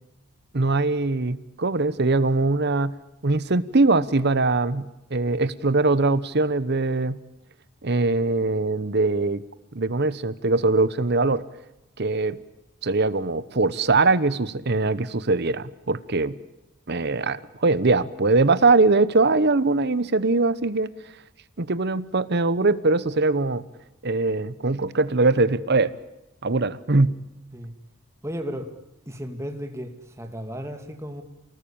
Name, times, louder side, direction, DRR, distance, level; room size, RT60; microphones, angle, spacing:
voice 1, 0.5-3.0 3.2-7.2 7.8-9.4 9.7-11.4 12.0-12.4 12.8-16.4 16.9-20.9 21.6-23.6 24.0-25.9 26.4-27.2, right 3 dB, 50° right, 15 dB, 1.0 m, -22 dB
voice 2, 28.2-28.7 29.1-31.2, equal, 15° right, 5 dB, 2.5 m, -34 dB
28.5 x 19.5 x 8.8 m, 0.94 s
head